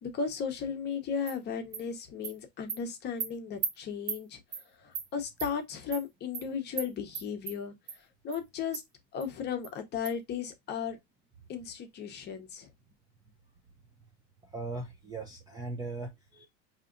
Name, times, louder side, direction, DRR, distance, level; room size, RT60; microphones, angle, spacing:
voice 1, 0.0-4.4 4.8-7.7 8.2-8.8 9.1-11.0 11.5-12.7, left 6 dB, 30° left, 0.8 m, -35 dB
Animal, 1.3-1.4 1.7-1.8 2.2-2.3 2.7-2.8 3.2-3.3 3.6-3.7 4.1-4.2 4.5-4.6 4.9-5.1 5.4-5.5 5.9-6.0 6.3-6.4 6.8-6.9 7.1-7.6 7.9-8.0 8.3-8.4 8.7-8.8 9.2-9.3 9.6-9.7 10.1-10.2, right 6 dB, 70° right, 1.3 m, -35 dB
voice 2, 14.5-16.5, right 3 dB, 10° right, 0.4 m, -39 dB
4.6 x 2.8 x 2.5 m
supercardioid pair, 145°, 35 cm